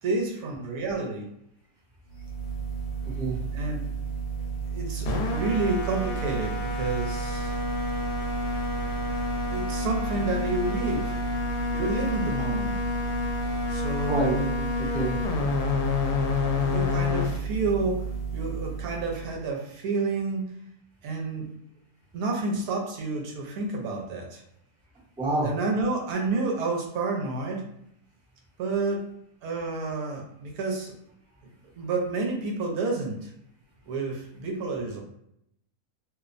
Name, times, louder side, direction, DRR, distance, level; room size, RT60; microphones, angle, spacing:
voice 1, 0.0-1.3 3.5-3.9 4.7-7.6 9.5-11.2 11.7-12.8 13.7-14.7 16.5-20.5 21.0-21.5 22.1-24.4 25.4-27.6 28.6-29.1 29.4-30.9 31.8-33.3 33.9-35.0, right 3 dB, 75° right, 0 dB, 1.0 m, -30 dB
sound 1, 2.1-19.4, left 1 dB, 80° left, 1.1 m, -29 dB
voice 2, 3.0-3.4 14.0-14.4 14.9-15.2 25.2-25.5, right 2 dB, 5° right, -8 dB, 0.5 m, -27 dB
2.8 x 2.0 x 2.4 m, 0.74 s
omnidirectional pair, 1.7 m